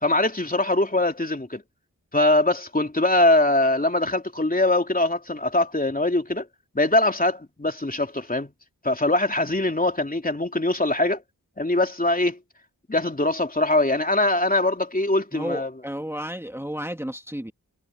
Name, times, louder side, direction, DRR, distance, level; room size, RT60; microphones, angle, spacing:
voice 1, 0.0-1.6 2.1-6.5 6.7-8.5 8.8-11.2 11.6-12.4 12.9-15.7, left 2 dB, 25° left, 3.1 m, -22 dB
voice 2, 15.3-17.5, equal, 10° right, 2.3 m, -32 dB
cardioid pair, 45°, 33 cm